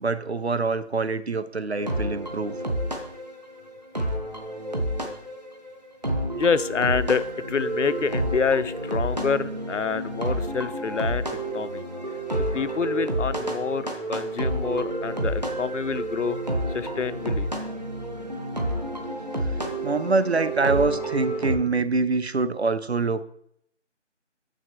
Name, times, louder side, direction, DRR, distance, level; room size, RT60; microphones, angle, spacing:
voice 1, 0.0-2.6 19.4-19.6 19.8-23.2, right 3 dB, 60° right, 14 dB, 0.6 m, -25 dB
sound 1, 1.8-21.6, right 1 dB, 35° right, 0.9 m, -29 dB
voice 2, 6.3-11.8 12.5-16.4 16.7-17.5, left 5 dB, 85° left, 15 dB, 0.6 m, -27 dB
7.0 x 6.3 x 3.3 m, 0.69 s
figure-of-eight pair, 170°, 36 cm